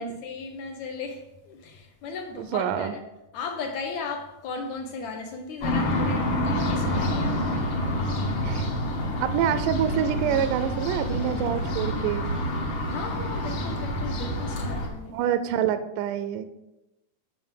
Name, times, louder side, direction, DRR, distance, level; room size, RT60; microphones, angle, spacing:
voice 1, 0.0-3.0 3.3-7.7 10.4-10.5 12.9-15.2, left 4 dB, 75° left, 1.7 m, -36 dB
voice 2, 2.4-2.9 8.4-8.7 9.2-12.2 15.1-16.5, right 9 dB, 80° right, 2.0 m, -26 dB
sound 1, 5.6-14.9, left 1 dB, 50° left, 1.5 m, -27 dB
7.6 x 5.8 x 7.2 m
omnidirectional pair, 4.1 m